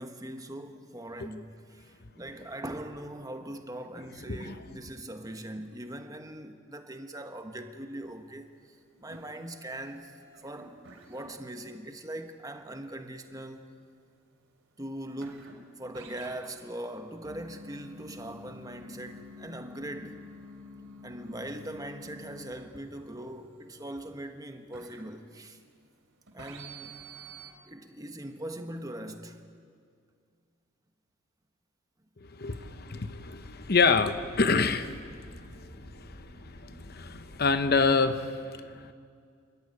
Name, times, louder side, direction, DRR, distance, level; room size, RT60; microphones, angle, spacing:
voice 1, 0.0-10.1 10.4-10.8 11.0-13.8 14.8-20.3 21.0-25.6 26.3-27.0 27.7-29.4, right 1 dB, 20° right, 1.3 m, -41 dB
sound 1, 8.0-8.5 8.7-25.9 26.3-27.5, equal, 70° right, 3.4 m, -49 dB
voice 2, 32.4-35.3 35.5-35.7 35.9-36.2 36.6-38.9, left 4 dB, 50° left, 1.0 m, -27 dB
sound 2, 32.6-38.0, equal, 70° left, 3.6 m, -49 dB
29.5 x 13.5 x 9.8 m
head